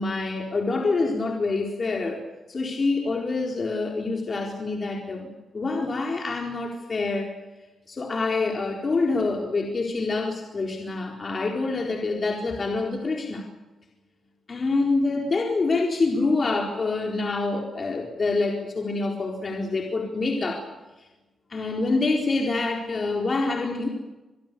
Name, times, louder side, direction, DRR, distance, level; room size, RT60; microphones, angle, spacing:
voice 1, 0.0-2.2 2.5-5.3 5.5-7.3 7.9-13.5 14.5-20.7 21.5-23.9, left 3 dB, 35° left, 1 dB, 4.2 m, -26 dB
26.5 x 23.5 x 7.0 m, 1.1 s
wide cardioid pair, 120°, 0 cm